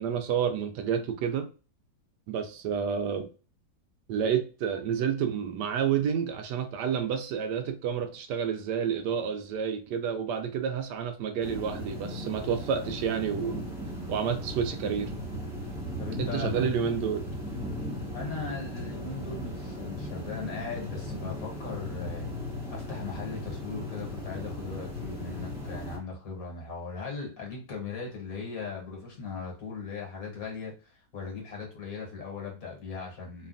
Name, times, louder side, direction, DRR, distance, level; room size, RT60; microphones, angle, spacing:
voice 1, 0.0-1.5 2.3-3.3 4.1-13.6 14.1-15.1 16.2-17.2, right 7 dB, 80° right, 1.2 m, -29 dB
sound 1, 11.4-26.0, left 1 dB, ahead, 0.8 m, -37 dB
voice 2, 16.0-16.7 18.1-22.3 22.7-33.5, left 4 dB, 60° left, 1.4 m, -38 dB
3.2 x 2.3 x 2.4 m
omnidirectional pair, 1.8 m